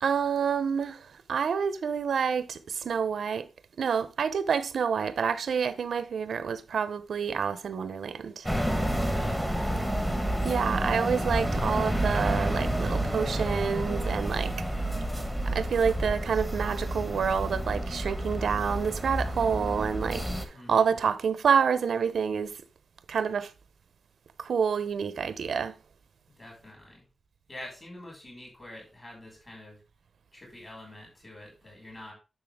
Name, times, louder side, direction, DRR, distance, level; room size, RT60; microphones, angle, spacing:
voice 1, 0.0-3.5 3.8-8.5 10.4-14.5 15.5-22.6 23.1-23.5 24.4-25.7, right 6 dB, 85° right, 0.7 m, -28 dB
sound 1, 8.4-20.4, right 1 dB, 5° left, 1.5 m, -29 dB
voice 2, 9.1-9.9 20.5-21.0 26.4-27.1 27.5-29.8 30.3-32.1, left 1 dB, 25° left, 6.3 m, -46 dB
10.5 x 6.7 x 3.6 m
wide cardioid pair, 165°, 0 cm